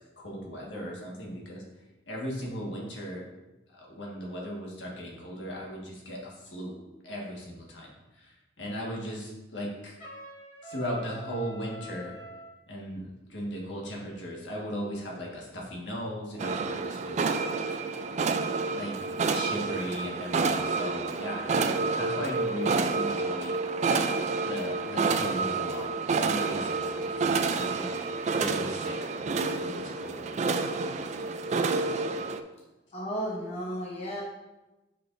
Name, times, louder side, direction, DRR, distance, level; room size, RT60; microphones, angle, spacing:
voice 1, 0.2-1.6 2.1-3.2 3.8-6.8 7.0-7.9 8.2-9.9 10.6-12.2 12.7-17.4 18.4-18.9 19.2-23.6 24.4-27.9 28.3-30.3 31.4-31.5, equal, 75° left, -3 dB, 1.6 m, -37 dB
Trumpet, 10.0-12.5, right 1 dB, 50° left, 2.1 m, -45 dB
sound 1, 16.4-32.4, right 4 dB, 40° right, 0.3 m, -29 dB
voice 2, 32.9-34.2, equal, 35° left, -3 dB, 0.9 m, -33 dB
7.7 x 5.1 x 2.6 m, 1.1 s
head